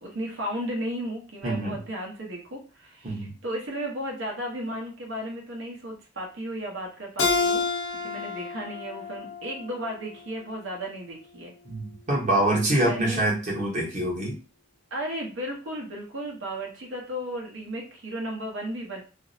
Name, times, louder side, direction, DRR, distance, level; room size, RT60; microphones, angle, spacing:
voice 1, 0.0-7.6 8.0-11.5 12.8-13.3 14.9-19.0, equal, 70° right, 0 dB, 0.8 m, -34 dB
voice 2, 1.4-1.8 3.0-3.3 11.6-14.4, right 1 dB, 40° right, -4 dB, 1.0 m, -25 dB
Keyboard (musical), 7.2-10.4, left 4 dB, 90° left, 0.6 m, -29 dB
2.5 x 2.0 x 2.6 m, 0.35 s
head